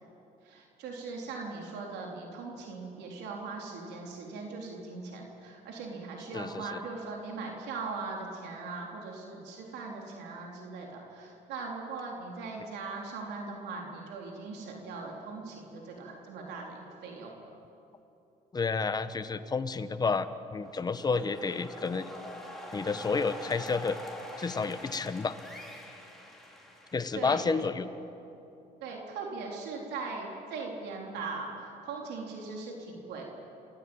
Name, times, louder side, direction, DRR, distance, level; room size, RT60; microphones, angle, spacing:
voice 1, 0.4-17.4 27.2-27.6 28.8-33.2, right 4 dB, 85° right, 0 dB, 3.8 m, -40 dB
voice 2, 6.3-6.8 18.5-22.1 22.7-24.0 24.4-25.4 26.9-27.9, left 4 dB, 25° left, 11 dB, 1.1 m, -30 dB
sound 1, 20.6-27.5, left 1 dB, ahead, 4.0 m, -45 dB
27.5 x 16.0 x 8.9 m, 2.9 s
cardioid pair, 110°, 17 cm